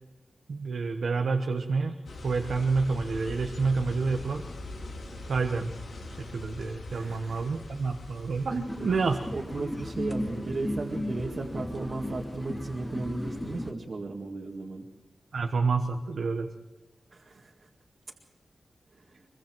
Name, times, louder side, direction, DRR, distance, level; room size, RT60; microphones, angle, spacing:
voice 1, 0.5-2.0 2.2-4.4 5.3-5.7 6.1-8.5 8.9-9.2 15.3-16.5, right 4 dB, 80° right, 4 dB, 1.2 m, -28 dB
sound 1, 2.1-12.2, left 2 dB, 90° left, 4.0 m, -43 dB
voice 2, 6.9-7.6 8.5-8.9 9.3-14.9 17.1-17.7 18.9-19.3, right 3 dB, 55° right, -2 dB, 2.1 m, -35 dB
sound 2, 8.7-13.7, left 1 dB, 10° left, 1.1 m, -35 dB
24.0 x 24.0 x 4.7 m, 1.1 s
wide cardioid pair, 120°, 0 cm